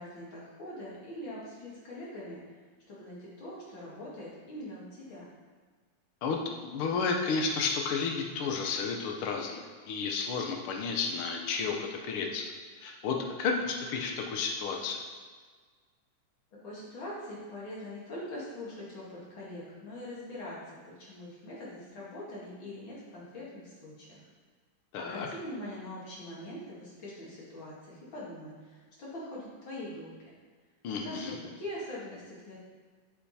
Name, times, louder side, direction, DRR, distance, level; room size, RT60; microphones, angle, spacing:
voice 1, 0.0-2.4 2.9-5.3 16.6-24.2 25.0-30.1 31.0-32.6, left 1 dB, 45° left, -6 dB, 2.6 m, -43 dB
voice 2, 6.2-12.5 12.8-15.0 24.9-25.3 30.8-31.3, left 5 dB, 75° left, 1 dB, 1.2 m, -32 dB
8.4 x 6.1 x 4.1 m, 1.5 s
omnidirectional pair, 3.5 m